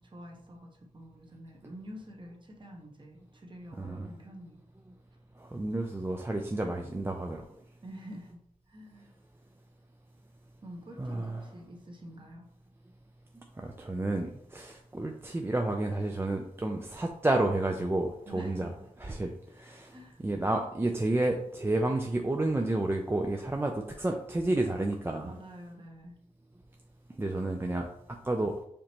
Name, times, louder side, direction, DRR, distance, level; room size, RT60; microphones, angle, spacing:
voice 1, 0.0-4.6 7.8-8.4 8.7-9.1 10.6-12.5 18.3-18.8 19.9-20.2 25.2-26.2, equal, 35° right, 0 dB, 1.0 m, -47 dB
voice 2, 5.4-7.4 11.0-11.4 13.6-18.7 19.1-19.9 20.2-25.3 27.2-27.9 28.2-28.6, right 2 dB, 15° right, 2 dB, 0.4 m, -30 dB
5.0 x 2.9 x 2.9 m, 0.72 s
wide cardioid pair, 75°, 14 cm